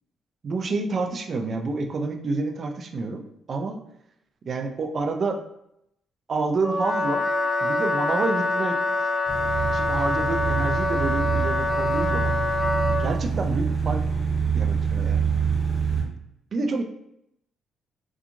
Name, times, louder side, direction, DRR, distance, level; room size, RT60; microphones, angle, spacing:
voice 1, 0.4-3.8 4.4-5.4 6.3-7.3 7.6-8.8 9.7-12.4 13.0-14.0 14.5-15.3 16.5-16.8, right 3 dB, 50° right, 4 dB, 0.4 m, -28 dB
Wind instrument woodwind instrument, 6.6-13.1, left 2 dB, 30° left, 0.4 m, -25 dB
sound 1, 9.3-16.0, right 6 dB, 25° right, 1.1 m, -26 dB
2.8 x 2.3 x 2.5 m, 0.77 s
cardioid pair, 90°, 0 cm